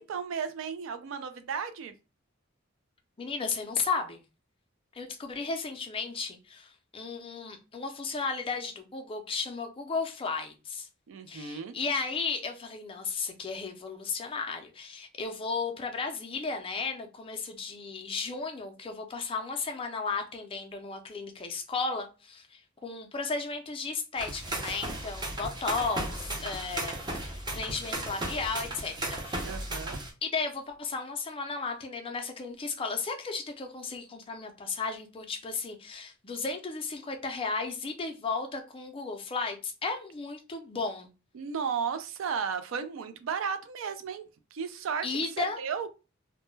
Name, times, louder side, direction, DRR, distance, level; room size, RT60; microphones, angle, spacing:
voice 1, 0.0-1.9 11.1-11.8 29.4-30.0 41.3-44.2 44.5-45.9, right 6 dB, 70° right, 0.4 m, -34 dB
voice 2, 3.2-4.2 4.9-10.9 11.3-29.4 30.2-41.1 45.0-45.6, left 4 dB, 25° left, 0.4 m, -34 dB
sound 1, 24.2-30.1, right 1 dB, 20° right, 0.6 m, -35 dB
2.2 x 2.1 x 3.0 m
head